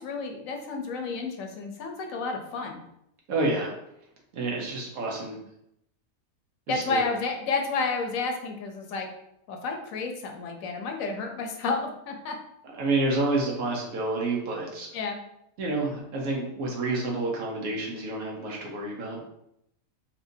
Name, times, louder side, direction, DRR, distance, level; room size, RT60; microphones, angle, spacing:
voice 1, 0.0-2.8 6.7-9.1 9.5-12.4 14.9-15.2, left 4 dB, 75° left, 4 dB, 1.0 m, -31 dB
voice 2, 3.3-3.7 4.3-5.4 6.7-7.0 12.6-14.9 15.6-19.2, right 2 dB, 85° right, -1 dB, 1.2 m, -29 dB
4.2 x 2.5 x 2.6 m, 0.78 s
omnidirectional pair, 1.4 m